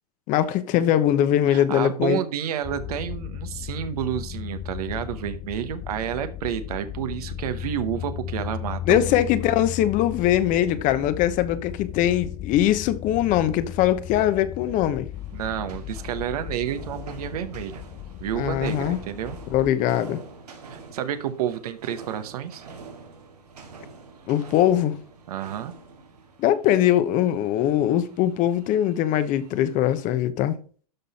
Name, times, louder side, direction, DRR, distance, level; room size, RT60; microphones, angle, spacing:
voice 1, 0.3-2.2 8.9-15.1 18.4-19.0 19.5-20.2 24.3-24.9 26.4-30.5, left 11 dB, 40° left, 1.0 m, -21 dB
voice 2, 1.5-9.2 15.3-17.8 18.2-19.4 20.7-22.6 25.3-25.7, right 10 dB, 75° right, 1.1 m, -30 dB
sound 1, 2.6-19.7, left 11 dB, 25° left, 0.4 m, -36 dB
sound 2, 15.1-30.0, right 4 dB, 90° right, 2.4 m, -46 dB
12.0 x 4.0 x 4.2 m
hypercardioid pair, 115°, 20 cm